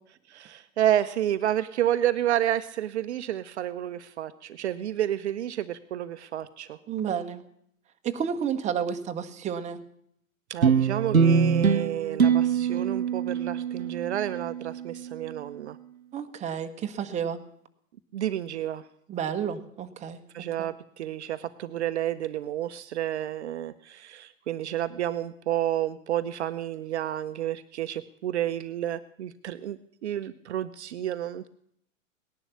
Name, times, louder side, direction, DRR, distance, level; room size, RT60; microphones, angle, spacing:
voice 1, 0.3-6.8 10.5-15.8 18.1-18.8 20.3-31.5, right 11 dB, 55° right, 13 dB, 0.8 m, -30 dB
voice 2, 6.9-7.4 8.0-9.8 16.1-17.4 19.1-20.2 20.6-20.7, right 8 dB, 15° right, 7 dB, 1.1 m, -31 dB
sound 1, 10.6-15.3, right 6 dB, 85° right, 0.9 m, -24 dB
18.5 x 11.0 x 7.0 m, 0.70 s
figure-of-eight pair, 105°, 41 cm